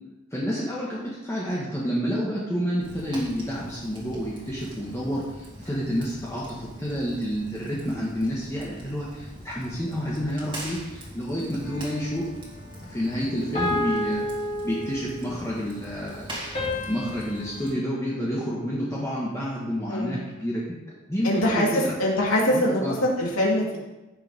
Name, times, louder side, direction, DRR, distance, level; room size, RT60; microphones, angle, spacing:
voice 1, 0.3-12.3 12.9-14.3 14.6-16.3 16.9-20.8 21.1-21.9 22.5-23.0, equal, 15° left, -6 dB, 1.6 m, -29 dB
Fire, 2.8-17.7, right 1 dB, 25° right, 2.5 m, -43 dB
sound 1, 11.6-12.3 13.5-15.3 16.5-19.0, left 1 dB, 30° left, 3.4 m, -32 dB
voice 2, 21.2-23.8, left 1 dB, 80° left, -4 dB, 3.2 m, -23 dB
15.0 x 6.8 x 3.7 m, 1.1 s
head